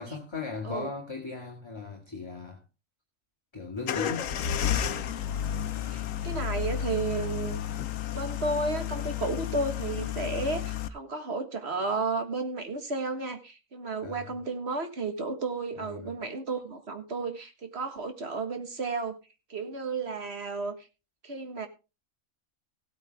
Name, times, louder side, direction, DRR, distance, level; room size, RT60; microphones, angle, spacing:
voice 1, 0.0-2.6 3.5-4.4 14.0-14.4 15.8-16.1, left 4 dB, 20° left, 0 dB, 2.1 m, -37 dB
sound 1, 3.8-10.9, left 10 dB, 85° left, 1.2 m, -32 dB
voice 2, 5.9-7.6 8.1-19.2 19.5-20.8 21.2-21.7, right 3 dB, 55° right, 7 dB, 1.7 m, -33 dB
16.0 x 8.9 x 3.4 m, 0.30 s
omnidirectional pair, 1.3 m